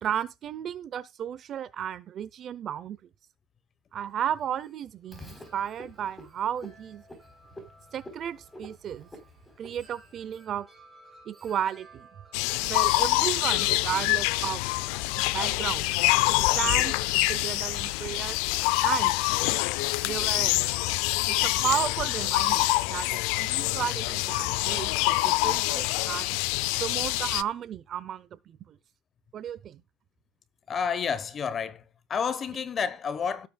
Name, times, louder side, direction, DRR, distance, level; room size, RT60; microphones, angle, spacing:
voice 1, 0.0-3.0 3.9-7.0 7.9-9.1 9.6-10.7 11.3-12.1 12.6-14.6 15.2-15.9 16.4-18.4 18.8-19.2 20.0-20.6 21.2-26.3 26.8-28.8 29.3-29.8, right 9 dB, 35° right, 0.7 m, -33 dB
Wind chime, 4.1-20.9, right 2 dB, 10° right, 5.9 m, -58 dB
Frog, 5.1-10.3, left 1 dB, 10° left, 4.0 m, -49 dB
sound 1, 12.3-27.4, left 20 dB, 80° left, 0.5 m, -26 dB
voice 2, 30.7-31.8 32.1-33.5, left 6 dB, 25° left, 1.1 m, -30 dB
17.0 x 8.7 x 2.4 m
cardioid pair, 165°, 0 cm